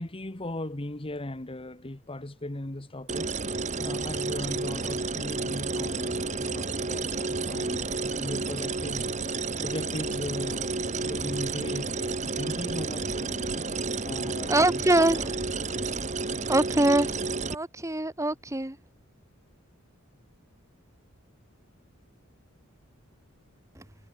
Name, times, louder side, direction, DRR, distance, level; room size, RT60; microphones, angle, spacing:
voice 1, 0.0-13.7 14.0-15.2, left 1 dB, 25° left, 1.3 m, -38 dB
sound 1, 3.1-17.5, right 3 dB, 35° right, 1.7 m, -31 dB
voice 2, 14.5-15.4 16.4-17.2 17.5-18.8 23.7-23.8, right 2 dB, 15° right, 1.5 m, -24 dB
head